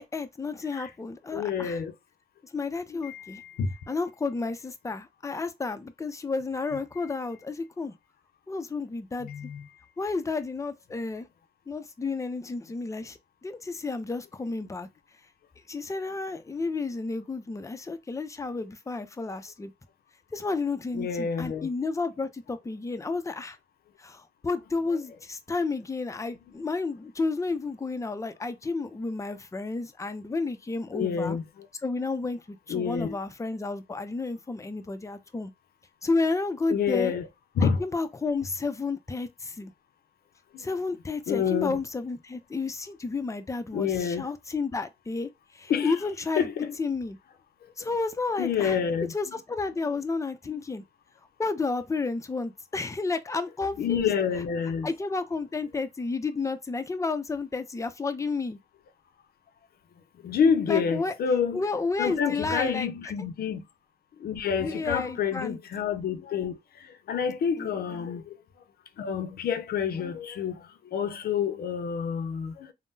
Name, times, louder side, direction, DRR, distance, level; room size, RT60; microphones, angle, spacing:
voice 1, 0.0-1.8 2.5-3.4 3.9-7.9 8.5-9.3 10.0-11.3 11.7-13.2 13.4-14.9 15.7-19.7 20.3-23.6 24.0-31.4 31.8-35.5 36.0-37.1 37.6-39.7 40.6-45.3 45.6-46.5 46.8-47.2 47.8-48.8 49.1-50.8 51.4-54.1 54.8-58.6 60.7-61.1 61.5-62.9 64.6-65.6 67.6-67.7, left 3 dB, 20° left, 0.5 m, -31 dB
voice 2, 1.3-1.9 2.9-3.7 6.7-6.8 9.2-9.7 20.9-21.7 30.9-31.7 32.7-33.2 36.7-37.3 37.6-37.8 40.6-40.7 41.3-41.8 43.7-44.3 45.7-46.0 46.4-46.8 47.8-47.9 48.4-49.1 49.9-50.0 50.5-50.6 53.8-54.9 60.2-61.6 62.0-63.6 64.2-66.6 67.1-68.4 69.0-70.6 70.9-72.7, left 7 dB, 80° left, 0.5 m, -28 dB
3.5 x 2.0 x 2.7 m
cardioid pair, 55°, 16 cm